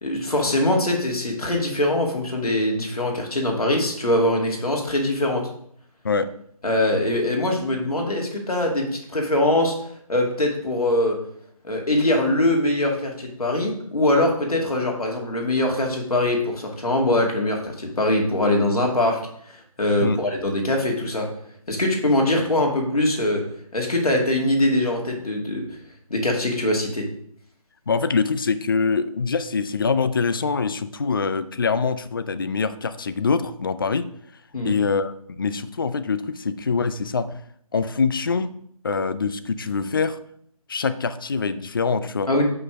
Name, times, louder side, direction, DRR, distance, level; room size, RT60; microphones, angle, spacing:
voice 1, 0.0-5.4 6.6-9.8 10.1-11.2 11.6-19.2 19.5-21.3 21.7-23.4 23.7-25.6 26.1-27.1 34.5-34.7 42.3-42.4, left 1 dB, 80° left, 0 dB, 2.4 m, -22 dB
voice 2, 27.9-34.1 34.6-37.4 37.7-38.5 38.8-40.2 40.7-42.3, left 5 dB, 35° left, 12 dB, 0.4 m, -24 dB
5.9 x 5.5 x 5.1 m, 0.66 s
figure-of-eight pair, 160°, 19 cm